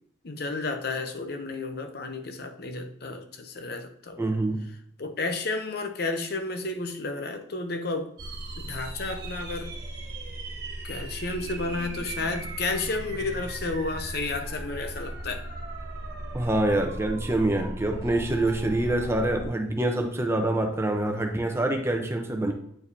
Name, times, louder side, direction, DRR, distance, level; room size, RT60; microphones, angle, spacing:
voice 1, 0.2-4.3 5.0-8.1 8.6-9.7 10.8-15.4, left 3 dB, 55° left, 0.7 m, -32 dB
voice 2, 4.2-4.6 16.3-22.5, right 1 dB, 15° right, 0.7 m, -26 dB
sound 1, 8.2-19.5, right 2 dB, 55° right, 1.6 m, -37 dB
8.9 x 4.7 x 2.7 m
head